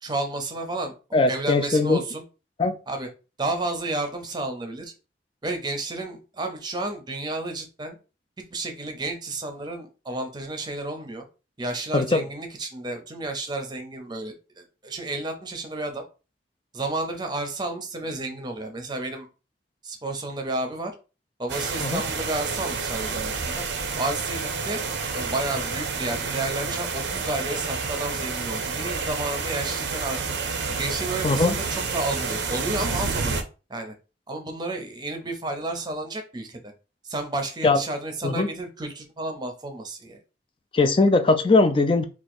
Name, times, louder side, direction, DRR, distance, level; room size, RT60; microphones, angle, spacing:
voice 1, 0.0-0.9 1.3-2.2 2.9-3.1 3.4-4.9 5.4-8.0 8.5-11.2 11.6-16.0 16.7-19.3 19.8-20.9 21.4-23.6 23.9-24.8 25.1-30.3 30.7-33.4 33.7-33.9 34.3-36.7 37.0-40.2, right 2 dB, 25° right, 5 dB, 0.7 m, -31 dB
voice 2, 1.1-2.0 2.6-2.7 11.9-12.3 21.8-22.0 31.2-31.6 37.6-37.8 38.2-38.5 40.7-42.0, left 3 dB, 30° left, 9 dB, 0.4 m, -20 dB
sound 1, 21.5-33.4, right 4 dB, 85° right, 0.6 m, -29 dB
2.9 x 2.4 x 4.2 m, 0.32 s
head